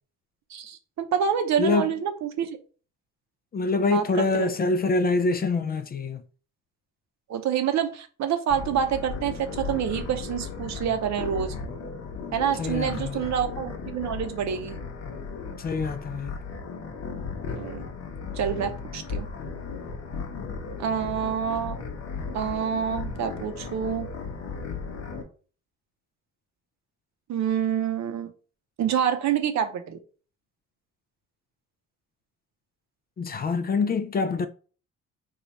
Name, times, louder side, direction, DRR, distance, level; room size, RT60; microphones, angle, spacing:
voice 1, 0.5-2.6 3.9-4.5 7.3-11.5 12.3-14.8 17.5-17.8 18.4-19.3 20.8-21.8 22.3-24.1 27.3-28.3 28.8-30.0, right 8 dB, 65° right, 0.7 m, -27 dB
voice 2, 1.6-1.9 3.5-6.2 12.6-13.2 15.6-16.3 33.2-34.5, left 3 dB, 30° left, 0.4 m, -25 dB
sound 1, 8.5-25.2, left 4 dB, 55° left, 0.8 m, -36 dB
3.2 x 2.3 x 4.0 m
cardioid pair, 90°, 30 cm